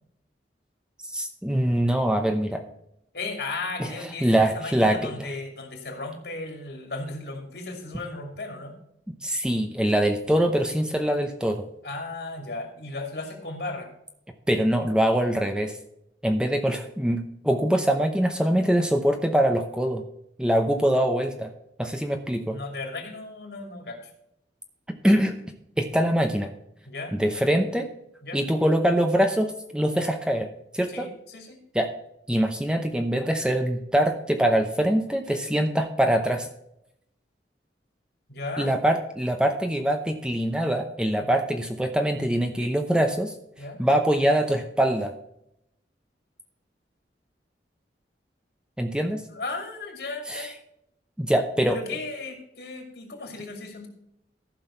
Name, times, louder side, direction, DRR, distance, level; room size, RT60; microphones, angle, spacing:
voice 1, 1.1-2.6 3.8-3.9 4.2-5.3 9.2-11.6 14.5-15.7 16.2-17.2 17.4-20.0 20.4-21.5 21.8-22.6 25.0-25.4 25.8-26.5 27.1-27.9 28.3-30.5 30.7-31.1 31.7-31.9 32.3-36.5 38.6-43.3 43.8-45.1 48.8-49.2 50.3-50.5 51.2-51.8, right 1 dB, 5° right, 5 dB, 0.8 m, -23 dB
voice 2, 3.1-8.7 11.8-13.9 22.5-24.1 26.8-27.2 28.2-28.4 30.9-31.6 38.3-38.7 41.2-41.3 43.6-43.8 49.3-50.5 51.7-53.9, left 3 dB, 65° left, 3 dB, 2.8 m, -35 dB
14.0 x 6.2 x 4.4 m, 0.78 s
head